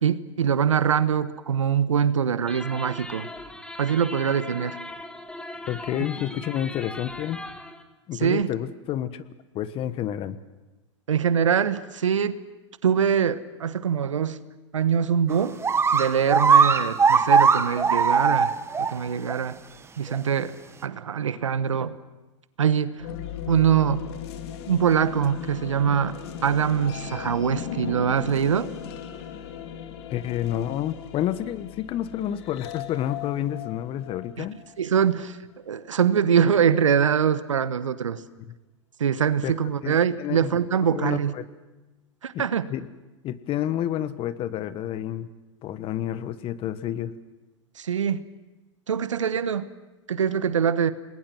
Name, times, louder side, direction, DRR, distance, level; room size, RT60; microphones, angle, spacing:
voice 1, 0.0-3.3 3.8-4.8 8.2-8.5 11.1-12.4 12.8-14.4 14.7-15.6 15.9-18.5 18.8-19.6 20.0-20.5 20.8-21.9 22.6-23.1 23.5-24.1 24.7-26.1 26.4-28.7 34.4-34.5 34.8-35.4 35.7-38.2 39.0-41.3 42.2-42.7 47.8-48.2 48.9-49.7 50.1-50.9, right 8 dB, 85° right, 14 dB, 1.2 m, -23 dB
sound 1, 2.5-7.8, left 1 dB, 5° left, 1.6 m, -39 dB
voice 2, 5.7-7.4 8.1-9.2 9.5-10.4 30.1-34.6 38.4-38.5 39.4-39.5 39.8-40.6 40.9-41.4 42.3-42.9 43.2-45.3 45.6-47.1, left 11 dB, 35° left, 14 dB, 1.3 m, -29 dB
sound 2, 15.3-15.4 15.6-18.9 19.3-19.4 20.1-20.2, right 5 dB, 15° right, 1.3 m, -19 dB
sound 3, 23.0-34.8, left 9 dB, 60° left, 2.4 m, -38 dB
28.5 x 20.5 x 6.2 m, 1.1 s
hypercardioid pair, 105°, 16 cm